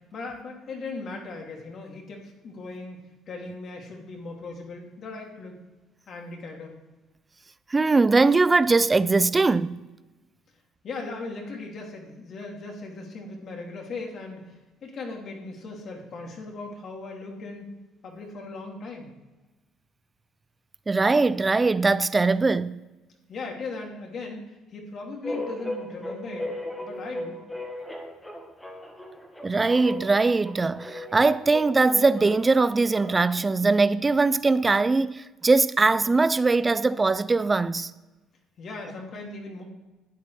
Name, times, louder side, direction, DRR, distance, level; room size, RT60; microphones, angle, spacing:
voice 1, 0.0-3.0 3.3-5.6 6.1-6.7 10.8-14.5 14.8-17.7 18.0-19.1 23.3-26.5 26.8-27.4 38.6-39.6, left 3 dB, 50° left, 2.5 m, -38 dB
voice 2, 7.7-9.8 20.9-22.8 29.4-37.9, right 3 dB, 20° right, 0.4 m, -21 dB
sound 1, 25.2-33.5, left 1 dB, 5° left, 1.7 m, -37 dB
11.5 x 8.7 x 3.3 m
supercardioid pair, 90°, 0 cm